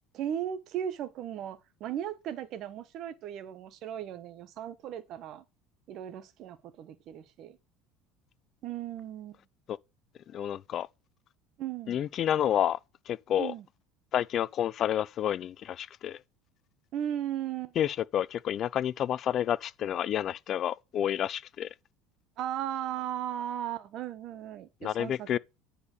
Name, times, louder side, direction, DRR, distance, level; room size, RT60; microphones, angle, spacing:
voice 1, 0.1-5.4 5.9-7.6 8.6-9.4 11.6-12.0 13.4-13.6 16.9-17.7 22.4-25.4, right 10 dB, 50° right, 1.2 m, -36 dB
voice 2, 10.3-10.9 11.9-12.8 13.1-13.5 14.1-16.2 17.8-21.7 24.8-25.4, left 10 dB, 40° left, 0.4 m, -29 dB
9.9 x 4.2 x 6.5 m
cardioid pair, 135°, 0 cm